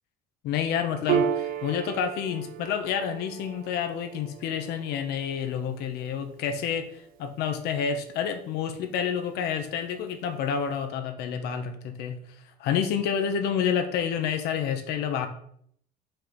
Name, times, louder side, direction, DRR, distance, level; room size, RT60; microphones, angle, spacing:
voice 1, 0.4-6.9 7.2-12.2 12.6-15.3, left 7 dB, 70° left, 7 dB, 1.1 m, -29 dB
Piano, 1.1-8.0, right 10 dB, 55° right, 0.4 m, -34 dB
5.7 x 4.6 x 5.2 m, 0.64 s
cardioid pair, 140°, 18 cm